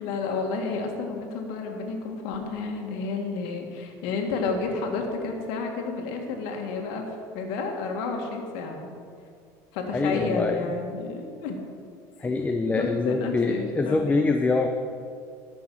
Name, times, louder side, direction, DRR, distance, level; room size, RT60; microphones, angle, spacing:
voice 1, 0.0-8.9 9.7-11.6 12.2-12.3 12.6-14.3, left 4 dB, 75° left, 2 dB, 1.8 m, -31 dB
voice 2, 9.9-10.6 12.2-14.7, left 3 dB, 15° left, 5 dB, 0.6 m, -24 dB
13.5 x 6.2 x 5.7 m, 2.3 s
supercardioid pair, 105°, 8 cm